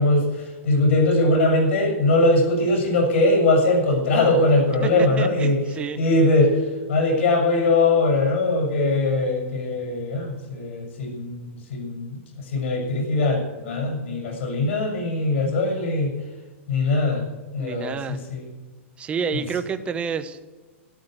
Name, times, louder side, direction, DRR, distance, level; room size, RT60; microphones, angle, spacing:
voice 1, 0.0-5.6 6.0-6.6 6.9-12.2 12.5-16.1 16.7-17.2 17.5-18.4, left 2 dB, 70° left, 2 dB, 6.7 m, -21 dB
voice 2, 4.8-6.0 17.6-18.2 19.0-20.5, right 6 dB, 15° right, 9 dB, 0.9 m, -29 dB
13.0 x 12.0 x 7.9 m, 1.2 s
hypercardioid pair, 150°, 7 cm